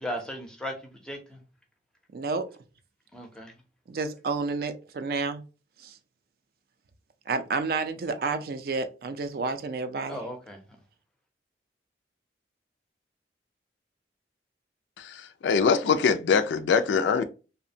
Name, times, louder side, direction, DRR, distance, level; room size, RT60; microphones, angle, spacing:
voice 1, 0.0-1.4 3.1-3.5 10.1-10.6, equal, 5° left, 0.5 m, -36 dB
voice 2, 2.1-2.5 3.9-5.4 5.8-6.0 7.3-10.2, right 4 dB, 55° right, 0.4 m, -30 dB
voice 3, 15.0-17.2, left 5 dB, 90° left, 0.3 m, -23 dB
2.7 x 2.1 x 2.6 m
head